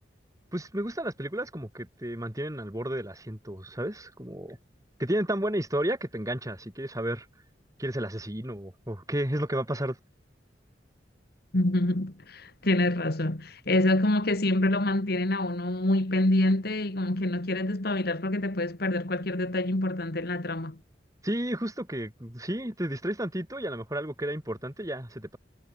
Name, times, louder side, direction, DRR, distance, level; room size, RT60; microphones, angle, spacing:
voice 1, 0.5-4.6 5.0-7.3 7.8-10.0 21.2-25.4, right 1 dB, 20° right, 3.8 m, -32 dB
voice 2, 11.5-20.8, left 1 dB, 55° left, 1.9 m, -26 dB
head